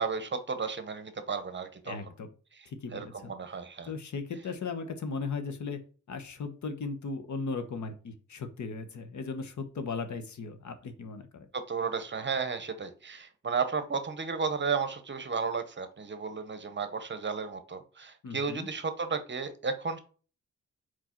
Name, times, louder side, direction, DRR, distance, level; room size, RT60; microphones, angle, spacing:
voice 1, 0.0-2.0 2.5-3.9 11.5-20.0, right 5 dB, 40° right, 10 dB, 0.9 m, -33 dB
voice 2, 1.9-2.3 2.7-3.3 3.9-5.8 6.1-11.5 18.2-18.7, left 4 dB, 70° left, 7 dB, 1.1 m, -37 dB
4.8 x 4.4 x 4.4 m, 0.38 s
wide cardioid pair, 125°, 30 cm